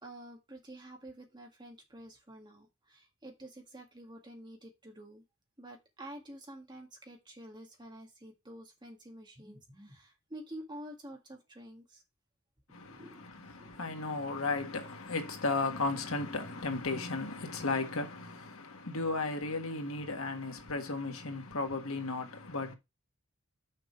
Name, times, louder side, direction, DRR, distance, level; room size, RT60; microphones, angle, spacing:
voice 1, 0.0-5.2 5.6-12.0 12.8-13.2 13.6-14.0, right 1 dB, 20° right, 1.8 m, -49 dB
voice 2, 12.7-22.8, left 3 dB, 80° left, 1.5 m, -35 dB
6.4 x 5.3 x 4.8 m
head